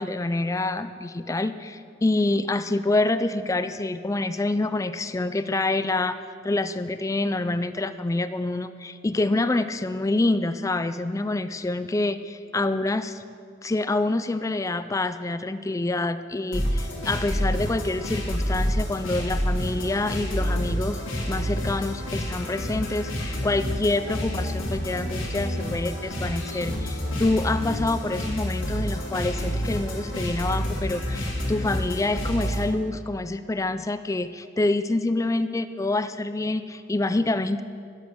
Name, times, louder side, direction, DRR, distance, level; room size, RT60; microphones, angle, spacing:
voice 1, 0.0-6.2 6.4-13.2 13.6-21.0 21.3-37.6, left 2 dB, 15° left, 12 dB, 0.3 m, -26 dB
sound 1, 16.5-32.7, equal, 85° left, 2.9 m, -28 dB
12.5 x 8.3 x 6.3 m, 2.3 s
head